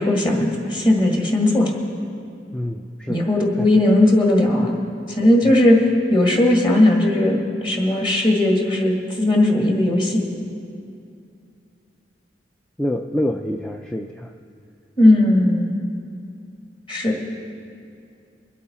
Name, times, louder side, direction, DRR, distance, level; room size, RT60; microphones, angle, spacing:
voice 1, 0.0-1.7 3.1-4.7 5.2-5.8 6.1-10.2 15.0-15.7 16.9-17.2, left 1 dB, 25° left, 0 dB, 1.9 m, -17 dB
voice 2, 2.5-3.3 3.6-3.7 5.4-5.5 12.8-14.3, left 1 dB, 5° left, 4 dB, 0.3 m, -26 dB
23.0 x 8.5 x 4.2 m, 2.5 s
head